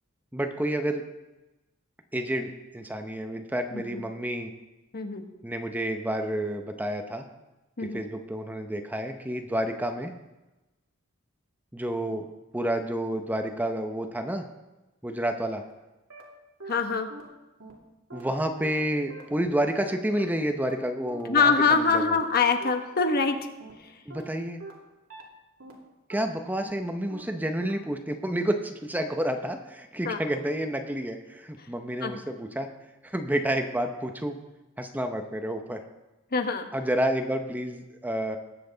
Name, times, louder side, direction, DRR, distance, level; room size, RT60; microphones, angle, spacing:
voice 1, 0.3-1.0 2.1-4.5 5.4-7.3 7.8-10.1 11.7-12.3 12.5-14.5 15.0-15.6 18.1-22.2 24.1-24.6 26.1-32.7 33.0-34.4 34.8-35.8 36.7-38.4, right 1 dB, 10° right, 6 dB, 0.7 m, -29 dB
voice 2, 3.7-4.0 4.9-5.2 7.8-8.0 16.7-17.1 21.3-23.4 30.0-30.2 32.0-32.2 36.3-36.7, left 4 dB, 45° left, 6 dB, 1.1 m, -24 dB
sound 1, 15.7-15.8 16.1-16.2 16.6-16.7 17.1-17.2 17.6-17.7 18.1-18.2 18.6-18.7 19.1-19.2 19.6-19.7 20.1-20.2 20.6-20.7 21.1-21.2 21.6-21.7 22.1-22.2 22.6-22.7 23.1-23.2 23.6-23.7 24.1-24.2 24.6-24.7 25.1-25.2 25.6-25.7 26.1-26.2 26.6-26.7 27.1-27.2 27.6-27.7, right 2 dB, 90° right, 2.5 m, -42 dB
19.5 x 7.7 x 3.9 m, 1.0 s
head